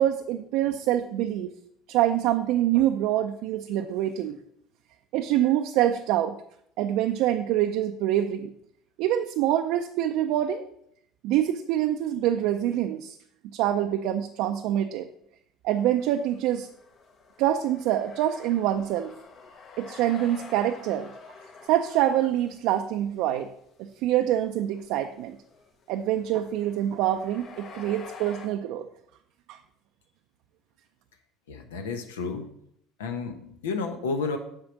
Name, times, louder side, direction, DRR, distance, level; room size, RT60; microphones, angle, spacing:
voice 1, 0.0-1.5 1.9-4.4 5.1-6.4 6.8-8.5 9.0-10.6 11.2-13.2 13.4-15.1 15.6-16.7 17.4-19.1 19.8-21.1 21.6-23.5 23.8-25.4 25.9-28.9 29.5-29.6, right 12 dB, 70° right, 6 dB, 0.4 m, -25 dB
sound 1, 15.9-22.6 23.1-23.4 23.7-23.8 24.4-28.5, left 4 dB, 50° left, 1.1 m, -48 dB
voice 2, 31.5-32.5 33.0-34.4, left 4 dB, 90° left, 6 dB, 0.9 m, -31 dB
7.3 x 3.8 x 6.2 m, 0.71 s
hypercardioid pair, 70°, 0 cm